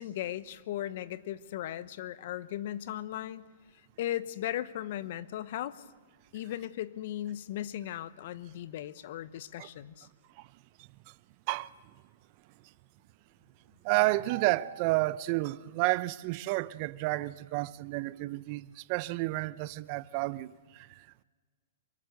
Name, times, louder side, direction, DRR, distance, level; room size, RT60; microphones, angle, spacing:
voice 1, 0.0-3.4 4.0-5.8 6.3-10.1, left 12 dB, 55° left, 1.0 m, -37 dB
voice 2, 13.8-21.2, right 20 dB, 45° right, 0.7 m, -31 dB
24.0 x 21.5 x 6.6 m
hypercardioid pair, 125°, 0 cm